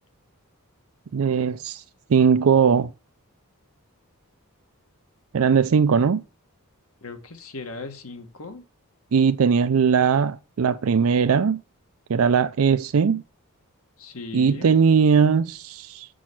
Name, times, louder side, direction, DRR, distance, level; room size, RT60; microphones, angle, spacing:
voice 1, 1.1-1.8 2.1-2.9 5.3-6.2 9.1-11.6 12.1-13.2 14.3-16.1, right 6 dB, 65° right, 0.4 m, -19 dB
voice 2, 7.0-8.6 14.0-14.7, left 3 dB, 70° left, 1.8 m, -38 dB
7.1 x 6.1 x 6.2 m
head